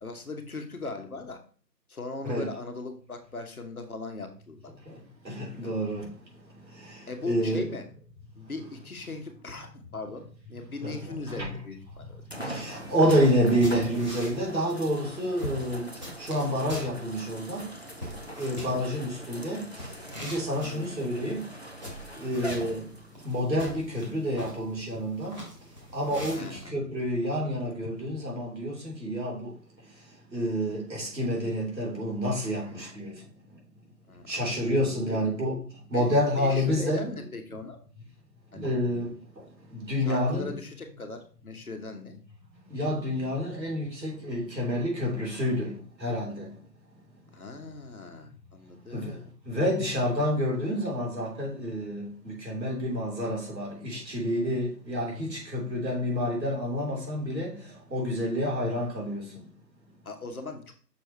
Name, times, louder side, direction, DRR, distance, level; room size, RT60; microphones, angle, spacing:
voice 1, 0.0-1.4 1.9-4.7 5.6-5.7 7.1-7.9 8.4-12.2 18.6-18.8 20.6-21.1 26.3-26.9 34.1-34.6 35.1-35.2 35.9-36.1 36.4-37.8 38.5-38.7 40.0-42.2 47.3-49.3 60.0-60.7, left 3 dB, 60° left, 1.2 m, -39 dB
voice 2, 5.2-6.1 6.9-7.0 7.2-7.6 10.8-11.5 12.4-15.9 16.2-17.7 18.4-19.7 20.1-21.5 22.2-22.9 23.2-25.4 25.9-29.5 30.3-33.1 34.3-35.6 35.9-37.0 38.6-39.2 39.9-40.5 42.7-46.5 48.9-49.2 49.5-57.5 57.9-59.3, equal, 85° right, 3.1 m, -28 dB
sound 1, 11.2-11.3 12.3-23.3 24.1-24.2 27.6-27.7, equal, 40° left, 0.5 m, -42 dB
sound 2, 12.8-26.7, equal, 25° right, 1.8 m, -43 dB
6.2 x 3.4 x 4.4 m
figure-of-eight pair, 175°, 50 cm